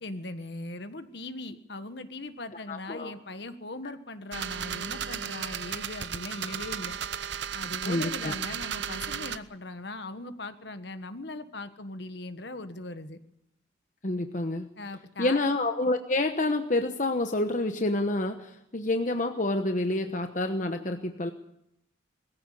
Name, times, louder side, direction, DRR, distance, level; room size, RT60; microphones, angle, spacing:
voice 1, 0.0-7.0 7.5-13.2 14.8-15.4, left 2 dB, 60° left, 10 dB, 1.4 m, -39 dB
voice 2, 2.7-3.1 7.9-8.3 14.0-14.7 15.2-21.3, left 2 dB, 40° left, 6 dB, 1.0 m, -28 dB
sound 1, 4.3-9.4, right 8 dB, 65° right, 0.8 m, -34 dB
21.0 x 15.0 x 8.5 m, 0.80 s
head